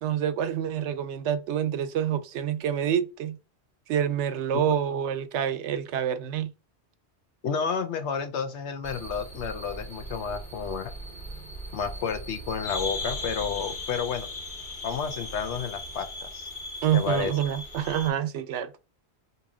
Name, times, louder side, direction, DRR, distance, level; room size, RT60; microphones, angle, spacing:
voice 1, 0.0-3.4 3.9-6.5 16.8-18.7, right 9 dB, 85° right, 0.9 m, -27 dB
voice 2, 7.4-10.9 11.7-14.3 14.8-16.5 16.9-17.3, left 6 dB, 80° left, 1.0 m, -31 dB
sound 1, 8.8-18.1, left 1 dB, 45° left, 2.7 m, -38 dB
4.0 x 2.9 x 3.7 m
omnidirectional pair, 1.1 m